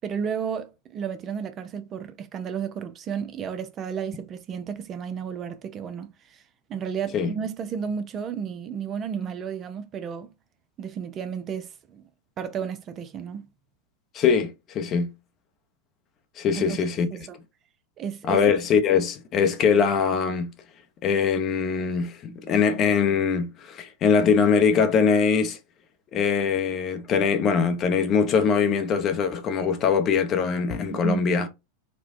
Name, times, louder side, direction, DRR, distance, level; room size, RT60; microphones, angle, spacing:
voice 1, 0.0-6.4 6.7-10.3 10.8-12.0 12.4-13.5 16.5-16.8 17.1-17.4 18.0-18.5 30.9-31.3, right 7 dB, 30° right, 0.5 m, -32 dB
voice 2, 14.1-15.1 16.4-17.1 18.2-20.5 21.0-25.6 26.1-31.5, left 6 dB, 35° left, 0.7 m, -22 dB
4.3 x 2.2 x 2.6 m
figure-of-eight pair, 95°, 0 cm